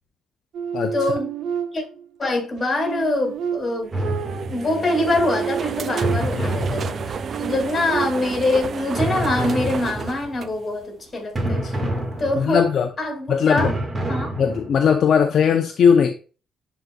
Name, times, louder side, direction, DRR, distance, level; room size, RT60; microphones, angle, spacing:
sound 1, 0.5-2.1 2.6-6.6 7.1-8.6, right 8 dB, 75° right, 0.7 m, -30 dB
voice 1, 0.9-1.3 1.7-1.8 2.2-3.9 4.5-11.6 12.2-12.6 13.0-13.7 14.1-14.3, left 2 dB, 35° left, 2.3 m, -24 dB
sound 2, 3.8-11.1, right 7 dB, 50° right, 0.3 m, -32 dB
sound 3, 3.9-4.9 6.0-7.6 9.0-10.4 11.4-12.8 13.6-15.0, right 1 dB, 25° right, 1.6 m, -27 dB
voice 2, 11.5-11.9 12.4-12.9 13.3-13.7 14.4-16.1, left 7 dB, 60° left, 0.5 m, -19 dB
10.5 x 4.0 x 2.3 m
cardioid pair, 90°, 0 cm